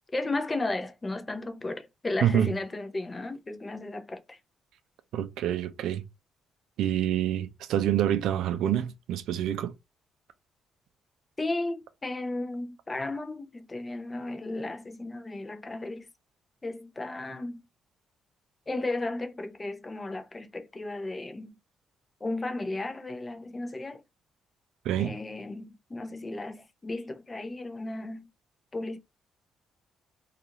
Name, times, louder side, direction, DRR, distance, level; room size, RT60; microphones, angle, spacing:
voice 1, 0.1-4.4 11.4-16.1 16.6-17.6 18.7-21.6 22.2-24.0 25.0-28.2 28.7-29.0, left 2 dB, 25° left, 0.5 m, -34 dB
voice 2, 2.2-2.5 5.1-6.0 6.8-9.7 24.8-25.1, right 11 dB, 85° right, 0.3 m, -27 dB
2.4 x 2.4 x 2.8 m
cardioid pair, 90°, 0 cm